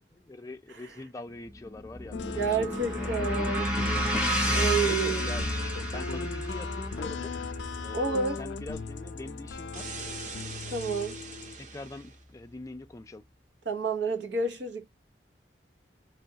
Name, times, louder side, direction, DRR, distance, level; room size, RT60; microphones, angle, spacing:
voice 1, 0.2-3.1 3.4-3.9 4.8-5.5 5.8-7.5 7.8-9.9 11.6-13.2, left 2 dB, 20° left, 0.4 m, -43 dB
sound 1, 1.5-9.8, equal, 5° right, 1.0 m, -31 dB
sound 2, 2.1-11.6, left 5 dB, 85° left, 0.5 m, -39 dB
voice 2, 2.4-3.8 4.5-5.4 7.9-8.4 10.7-11.2 13.7-14.8, right 4 dB, 80° right, 0.9 m, -29 dB
sound 3, 9.7-12.2, right 5 dB, 45° right, 0.6 m, -42 dB
3.4 x 2.3 x 2.8 m
head